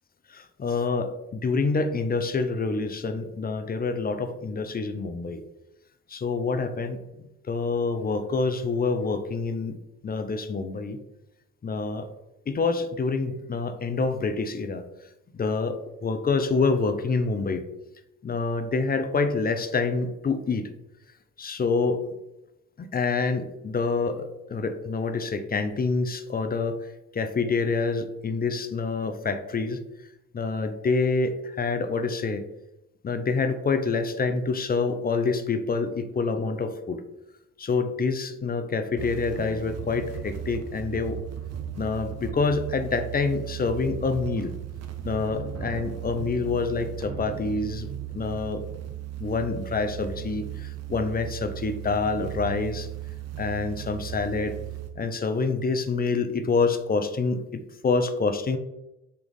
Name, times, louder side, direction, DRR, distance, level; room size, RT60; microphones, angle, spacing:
voice 1, 0.3-5.4 6.1-9.8 10.0-11.0 11.6-12.1 12.5-14.8 15.3-17.6 18.2-20.7 21.4-22.0 22.8-29.8 30.3-32.4 33.0-37.0 37.6-41.2 41.8-44.5 45.0-47.9 48.1-48.6 49.2-52.9 53.4-54.5 55.0-58.6, left 4 dB, 25° left, 8 dB, 0.5 m, -27 dB
sound 1, 39.0-54.9, right 10 dB, 40° right, 0.6 m, -36 dB
3.4 x 3.1 x 3.8 m, 0.94 s
hypercardioid pair, 50°, 39 cm